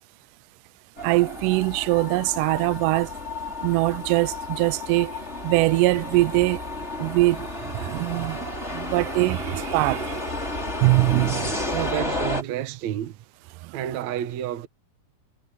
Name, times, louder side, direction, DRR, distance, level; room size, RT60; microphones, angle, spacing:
sound 1, 1.0-12.4, left 2 dB, 15° left, 5.5 m, -32 dB
voice 1, 1.0-3.1 3.6-5.2 5.4-6.6 7.0-10.3 10.8-11.6 13.6-13.7, right 21 dB, 90° right, 1.8 m, -22 dB
voice 2, 11.7-13.2 13.7-14.7, right 12 dB, 70° right, 1.8 m, -30 dB
omnidirectional pair, 4.3 m